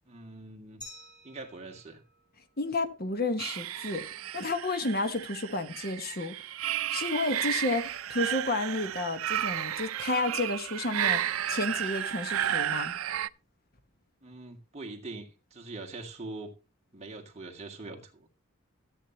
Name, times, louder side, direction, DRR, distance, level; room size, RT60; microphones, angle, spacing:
voice 1, 0.1-0.8 1.2-2.0 14.2-16.5 16.9-18.3, right 2 dB, 30° right, 2.1 m, -43 dB
Glass, 0.8-3.5, left 1 dB, 20° left, 6.7 m, -52 dB
voice 2, 2.6-4.1 4.3-6.4 6.9-11.2 11.5-12.9, left 2 dB, 45° left, 1.2 m, -31 dB
sound 1, 3.4-13.3, right 11 dB, 90° right, 0.4 m, -33 dB
13.5 x 8.6 x 2.8 m
head